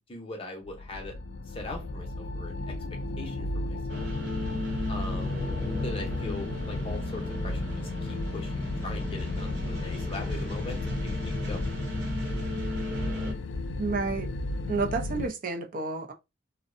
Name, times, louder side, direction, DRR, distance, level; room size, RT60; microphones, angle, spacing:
voice 1, 0.1-1.1 1.5-2.7 3.2-4.1 4.9-5.5 5.8-11.7, left 2 dB, 30° left, 0.6 m, -41 dB
sound 1, 0.6-15.3, left 2 dB, 75° left, 0.3 m, -34 dB
sound 2, 3.9-13.3, left 1 dB, 65° right, 0.9 m, -36 dB
voice 2, 13.8-14.3 14.7-16.1, right 3 dB, 45° right, 0.4 m, -30 dB
2.6 x 2.1 x 2.5 m
head